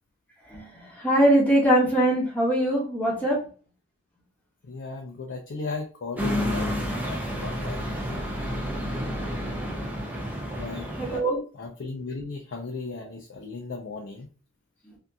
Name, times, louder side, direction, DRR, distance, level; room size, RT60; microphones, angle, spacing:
voice 1, 0.5-3.4 11.0-11.4 14.9-15.0, right 1 dB, 10° left, 0.8 m, -22 dB
voice 2, 4.6-8.2 10.5-10.9 11.6-14.3, left 3 dB, 75° left, 0.4 m, -36 dB
sound 1, 6.2-11.2, equal, 10° right, 0.4 m, -30 dB
2.7 x 2.5 x 2.2 m
head